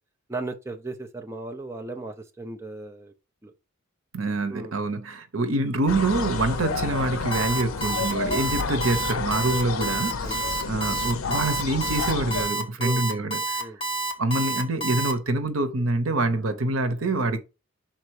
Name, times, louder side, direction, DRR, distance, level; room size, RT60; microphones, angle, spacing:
voice 1, 0.3-3.1 3.4-3.5 4.5-4.7 10.2-10.4 12.8-13.0 13.6-13.8, right 2 dB, 15° right, 0.6 m, -36 dB
voice 2, 4.1-13.7 14.2-17.4, right 2 dB, 75° right, 1.0 m, -26 dB
sound 1, 5.9-12.5, left 4 dB, 80° left, 0.6 m, -30 dB
Alarm, 7.3-15.1, right 3 dB, 25° left, 1.5 m, -28 dB
5.7 x 4.0 x 4.8 m
head